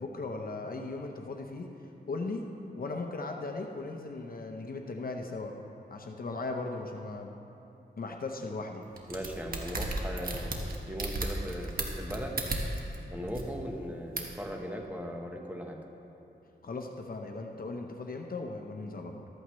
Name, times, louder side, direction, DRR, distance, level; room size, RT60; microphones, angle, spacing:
voice 1, 0.0-1.7 2.1-2.5 2.8-5.5 5.9-7.3 8.0-8.8 16.6-19.3, left 3 dB, 55° left, 3 dB, 0.9 m, -37 dB
sound 1, 9.0-13.0 13.3-13.4 14.2-14.4, right 2 dB, 50° right, 1.4 m, -34 dB
voice 2, 9.1-10.5 10.9-12.4 13.1-15.8, equal, 10° right, 1 dB, 1.2 m, -38 dB
14.5 x 13.0 x 3.2 m, 2.8 s
wide cardioid pair, 105°, 18 cm